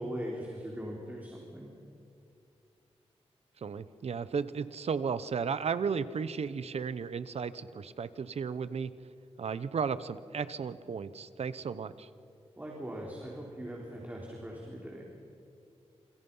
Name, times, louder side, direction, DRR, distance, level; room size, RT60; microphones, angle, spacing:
voice 1, 0.0-1.7 12.6-15.1, equal, 15° right, -2 dB, 4.2 m, -40 dB
voice 2, 3.6-8.9 9.4-12.1, right 6 dB, 75° right, 14 dB, 1.0 m, -34 dB
29.0 x 27.5 x 5.7 m, 2.5 s
wide cardioid pair, 115°, 11 cm